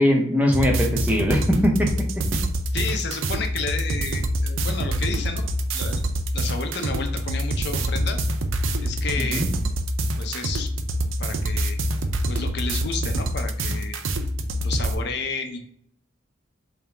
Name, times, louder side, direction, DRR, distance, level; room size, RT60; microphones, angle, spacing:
voice 1, 0.0-2.4 9.2-9.5, equal, 5° right, 2 dB, 0.6 m, -21 dB
sound 1, 0.5-14.9, right 1 dB, 85° right, 0.5 m, -26 dB
voice 2, 2.7-5.4 5.7-6.0 6.3-8.3 8.8-9.7 10.2-10.7 11.2-11.8 12.3-14.0 14.6-15.6, left 4 dB, 55° left, 5 dB, 0.6 m, -31 dB
3.7 x 2.8 x 3.3 m, 0.66 s
head